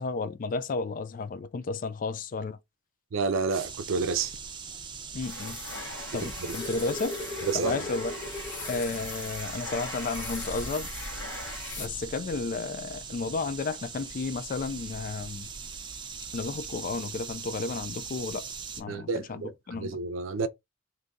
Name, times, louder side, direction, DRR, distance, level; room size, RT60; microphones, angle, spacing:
voice 1, 0.0-2.6 5.1-5.6 6.1-7.2 7.5-8.1 8.6-10.9 11.8-15.5 16.3-18.5 18.8-20.0, left 4 dB, 45° left, 0.3 m, -33 dB
voice 2, 3.1-4.3 6.2-6.6 7.4-7.8 18.9-20.5, right 4 dB, 85° right, 0.5 m, -30 dB
sound 1, 3.5-18.8, right 5 dB, 25° right, 0.5 m, -41 dB
sound 2, 5.2-12.3, left 3 dB, 70° left, 1.2 m, -40 dB
sound 3, 6.3-8.9 9.3-9.4 9.8-10.0 11.1-11.2, left 2 dB, 25° left, 1.1 m, -39 dB
2.7 x 2.6 x 3.5 m
head